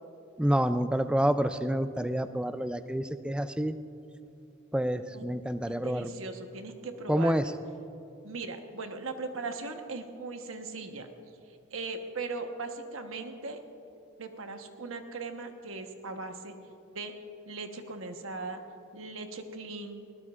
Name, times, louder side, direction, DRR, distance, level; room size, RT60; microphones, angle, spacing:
voice 1, 0.4-3.7 4.7-6.1 7.1-7.4, equal, 5° right, 11 dB, 0.3 m, -28 dB
voice 2, 5.7-7.6 8.2-11.1 11.7-13.6 14.2-16.5 16.9-17.1 17.4-18.6 18.9-20.0, right 3 dB, 80° right, 5 dB, 1.2 m, -39 dB
20.5 x 18.5 x 2.5 m, 2.7 s
head